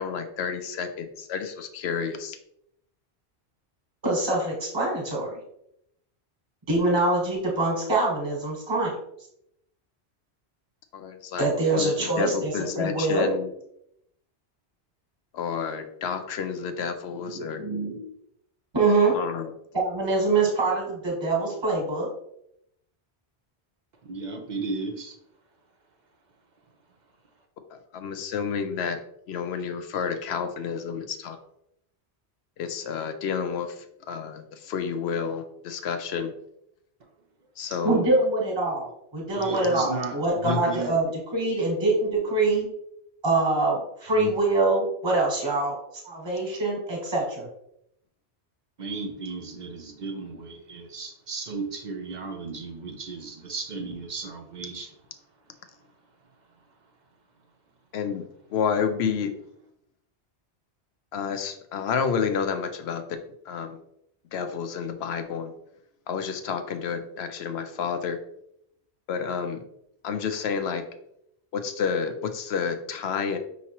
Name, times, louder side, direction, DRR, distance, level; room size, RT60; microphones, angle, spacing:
voice 1, 0.0-2.4 10.9-11.4 11.8-11.9 12.2-13.5 15.3-17.6 19.1-19.5 27.9-29.0 29.3-31.4 32.6-33.7 34.1-34.4 34.7-36.3 37.6-38.1 40.4-40.6 44.2-44.3 57.9-58.2 58.5-59.3 61.1-63.2 63.5-63.8 64.3-65.5 66.1-68.2 69.1-69.6 70.0-70.8 71.5-73.4, left 6 dB, 75° left, 8 dB, 0.8 m, -29 dB
voice 2, 4.0-5.3 6.7-8.9 11.4-13.3 17.1-18.0 18.7-19.1 19.7-22.1 37.8-42.7 43.2-45.7 46.0-47.5, right 2 dB, 25° right, -2 dB, 1.2 m, -24 dB
voice 3, 24.0-25.1 39.4-41.0 42.1-42.3 48.8-54.9, right 4 dB, 50° right, 4 dB, 0.6 m, -35 dB
5.6 x 2.9 x 2.9 m, 0.75 s
omnidirectional pair, 1.1 m